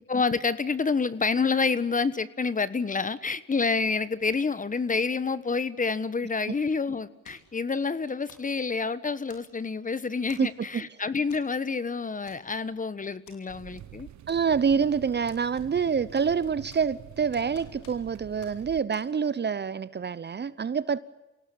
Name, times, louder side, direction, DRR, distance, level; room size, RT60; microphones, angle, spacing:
voice 1, 0.1-14.1, left 4 dB, 25° left, 16 dB, 1.3 m, -28 dB
sound 1, 7.2-7.6 8.3-8.5 9.3-9.7 10.3-10.6 11.3-11.5 11.8-11.9 12.3-12.7 13.3-13.4 14.3-14.7 15.3-15.9 16.1-17.0 17.3-18.1 18.4-18.6 18.9-19.1, left 6 dB, 85° left, 5.0 m, -55 dB
voice 2, 10.4-10.8 14.3-21.0, right 6 dB, 35° right, 18 dB, 0.9 m, -27 dB
sound 2, 13.5-18.8, right 11 dB, 65° right, 1.2 m, -47 dB
27.0 x 18.0 x 8.7 m, 1.0 s
cardioid pair, 90°, 30 cm